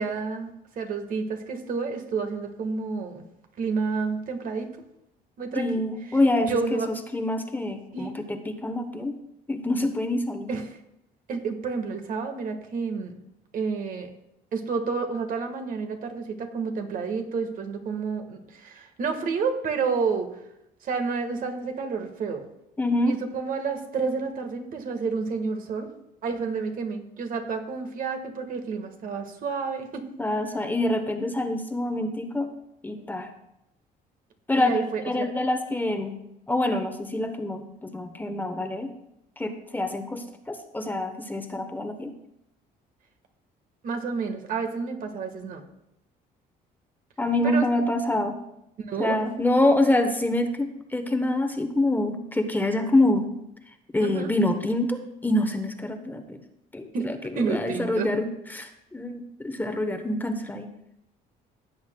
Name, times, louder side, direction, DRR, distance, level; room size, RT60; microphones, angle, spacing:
voice 1, 0.0-3.2 3.6-4.7 5.4-5.7 6.4-6.9 7.9-8.2 10.5-10.8 11.3-13.2 13.5-14.1 14.5-20.3 20.8-22.4 23.1-25.9 26.2-30.1 34.6-35.3 43.8-45.6 47.4-47.7 48.9-49.2 54.0-54.3 56.9-57.1 57.3-58.1, right 5 dB, 55° right, 5 dB, 1.5 m, -30 dB
voice 2, 5.5-9.1 9.5-10.5 22.8-23.2 30.2-32.5 32.8-33.3 34.5-36.2 36.5-38.9 39.4-42.1 47.2-48.4 49.0-53.3 53.9-56.4 56.7-58.3 58.5-60.7, left 1 dB, 10° left, 7 dB, 0.9 m, -26 dB
16.5 x 7.9 x 2.2 m, 0.83 s
cardioid pair, 110°, 17 cm